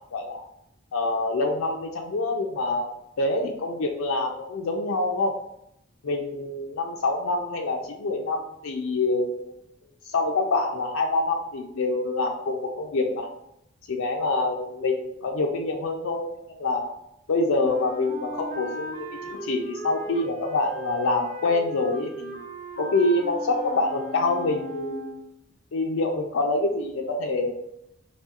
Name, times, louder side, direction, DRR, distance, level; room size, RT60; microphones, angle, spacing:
voice 1, 0.1-0.5 0.9-2.9 3.2-5.3 6.0-9.5 10.1-13.3 13.9-16.9 17.3-22.4 22.8-25.1 25.7-27.5, left 2 dB, 90° left, 2 dB, 0.4 m, -26 dB
Wind instrument woodwind instrument, 17.6-25.3, equal, 40° right, 0.7 m, -37 dB
4.2 x 2.9 x 2.4 m, 0.79 s
head